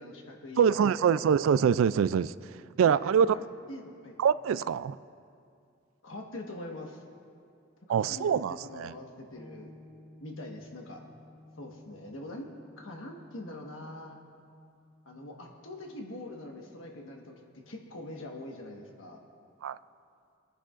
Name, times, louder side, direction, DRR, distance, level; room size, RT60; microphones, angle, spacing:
voice 1, 0.0-1.0 2.8-4.1 6.0-7.0 7.9-8.3 8.6-9.7 10.2-11.0 11.6-12.5 12.8-14.2 15.0-17.4 17.7-19.2, left 1 dB, 85° left, 1 dB, 1.4 m, -43 dB
voice 2, 0.6-2.3 2.8-3.3 4.2-5.0 7.9-8.9 19.6-19.8, right 7 dB, 85° right, 17 dB, 0.3 m, -24 dB
sound 1, 9.3-19.0, left 1 dB, 25° left, 2.6 m, -57 dB
24.5 x 9.9 x 2.5 m, 2.4 s
head